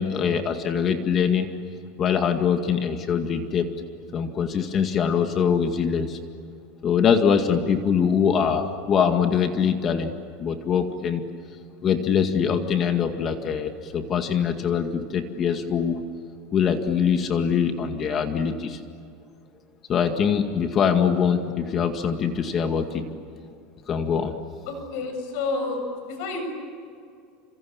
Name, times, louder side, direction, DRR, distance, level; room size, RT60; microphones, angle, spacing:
voice 1, 0.0-1.6 2.0-3.7 4.1-6.2 6.8-10.1 10.4-11.2 11.8-16.1 16.5-18.8 19.9-23.1 23.9-24.3, left 7 dB, 30° left, 6 dB, 2.0 m, -23 dB
voice 2, 24.7-25.8 26.0-26.4, left 3 dB, 65° left, 5 dB, 7.6 m, -29 dB
30.0 x 27.0 x 7.3 m, 2.3 s
supercardioid pair, 145°, 0 cm